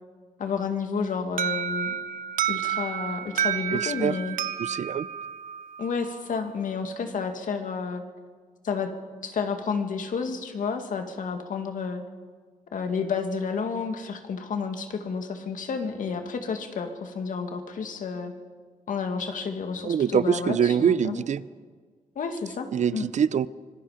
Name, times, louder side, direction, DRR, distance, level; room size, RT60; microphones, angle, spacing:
voice 1, 0.4-2.0 2.5-4.4 5.8-8.0 8.6-8.9 9.2-12.0 12.7-18.3 18.9-21.2 22.2-23.0, left 5 dB, 75° left, 5 dB, 2.2 m, -31 dB
Alarm, 1.4-6.2, right 8 dB, 90° right, 0.8 m, -30 dB
voice 2, 3.7-4.2 4.6-5.1 19.8-21.4 22.7-23.5, right 8 dB, 60° right, 18 dB, 0.6 m, -24 dB
25.5 x 20.0 x 5.1 m, 1.5 s
wide cardioid pair, 115°, 14 cm